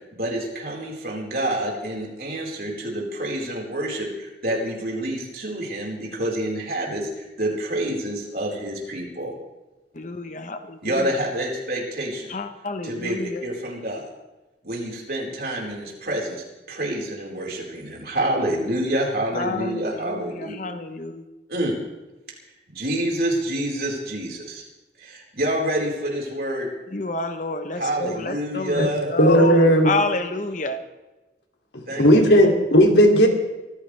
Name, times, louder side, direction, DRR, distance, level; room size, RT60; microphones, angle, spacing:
voice 1, 0.1-9.3 10.8-12.3 12.8-14.0 14.6-20.5 21.5-21.8 22.7-24.6 25.0-26.7 27.7-29.1 31.9-32.1, right 1 dB, 55° right, -2 dB, 4.7 m, -27 dB
voice 2, 9.9-11.1 12.3-13.4 19.3-21.2 26.9-30.8, left 3 dB, 45° left, 8 dB, 1.0 m, -29 dB
voice 3, 29.2-29.9 31.7-33.3, equal, 80° left, 2 dB, 2.7 m, -15 dB
24.5 x 15.0 x 3.4 m, 1.1 s
head